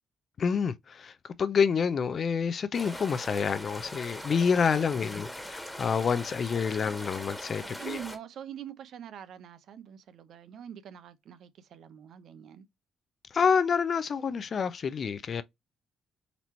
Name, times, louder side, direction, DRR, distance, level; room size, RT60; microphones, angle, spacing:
voice 1, 0.4-8.0 13.3-15.4, left 6 dB, 50° left, 0.4 m, -28 dB
sound 1, 2.7-8.2, equal, 5° left, 1.3 m, -41 dB
voice 2, 4.7-5.2 7.5-12.6, right 9 dB, 70° right, 0.6 m, -45 dB
4.0 x 2.9 x 4.3 m
cardioid pair, 90°, 0 cm